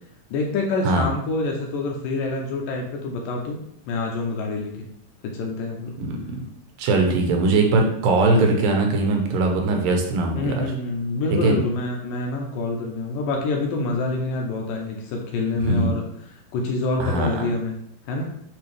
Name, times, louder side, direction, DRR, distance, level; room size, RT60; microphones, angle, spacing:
voice 1, 0.3-3.6 3.9-4.9 5.2-6.0 10.4-17.7 18.1-18.3, left 3 dB, 80° left, 1 dB, 2.2 m, -26 dB
voice 2, 6.0-6.4 6.8-10.7 11.4-11.5 15.7-15.9 17.0-17.5, right 3 dB, 75° right, 2 dB, 2.5 m, -21 dB
8.7 x 3.4 x 3.4 m, 0.73 s
omnidirectional pair, 4.3 m